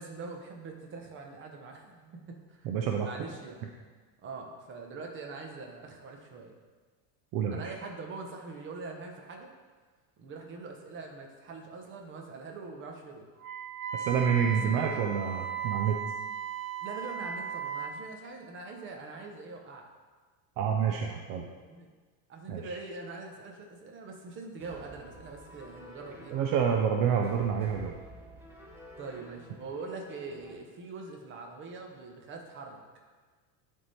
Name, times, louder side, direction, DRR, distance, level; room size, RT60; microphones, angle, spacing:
voice 1, 0.0-2.7 3.0-3.7 4.2-6.5 7.5-9.5 10.2-13.3 14.5-15.0 16.8-19.9 21.6-21.9 22.3-26.3 29.0-32.8, right 3 dB, 25° right, 2 dB, 0.9 m, -43 dB
voice 2, 2.6-3.1 7.3-7.6 13.9-16.0 20.6-21.5 22.5-22.7 26.3-27.9, right 7 dB, 50° right, 1 dB, 0.6 m, -28 dB
Wind instrument woodwind instrument, 13.4-18.0, right 7 dB, 85° right, 1.0 m, -36 dB
sound 1, 24.6-30.6, equal, 5° right, 0.6 m, -51 dB
11.0 x 3.7 x 4.1 m, 1.4 s
cardioid pair, 155°, 44 cm